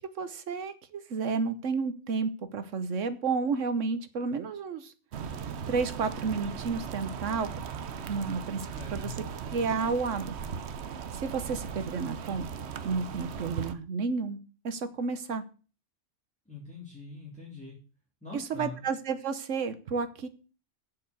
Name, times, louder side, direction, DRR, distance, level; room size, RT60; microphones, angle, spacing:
voice 1, 0.2-4.9 5.7-7.5 8.1-9.1 9.5-10.3 11.1-12.5 12.8-14.4 14.6-15.4 18.3-20.3, right 5 dB, 90° right, 11 dB, 1.4 m, -31 dB
sound 1, 5.1-13.7, right 7 dB, 65° right, 1.0 m, -38 dB
voice 2, 8.7-9.1 16.5-17.8 18.2-18.9, left 4 dB, 5° left, -5 dB, 3.1 m, -43 dB
7.4 x 6.8 x 8.1 m, 0.37 s
omnidirectional pair, 1.2 m